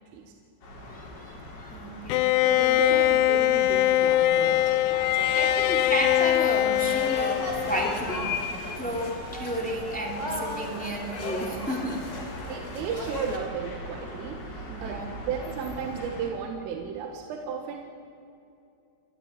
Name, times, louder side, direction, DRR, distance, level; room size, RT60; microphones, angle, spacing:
sound 1, 0.6-16.3, left 2 dB, 50° left, 6.2 m, -40 dB
voice 1, 0.8-2.4 5.3-8.3 8.8-12.0 14.7-15.1, right 1 dB, 5° left, 0 dB, 0.7 m, -32 dB
Bowed string instrument, 2.1-8.2, left 14 dB, 80° left, 3.1 m, -22 dB
voice 2, 2.1-5.9 12.3-17.8, right 7 dB, 90° right, 2 dB, 4.0 m, -35 dB
sound 2, 6.7-13.4, left 1 dB, 25° left, 4.4 m, -37 dB
29.0 x 14.0 x 9.5 m, 2.5 s
omnidirectional pair, 5.7 m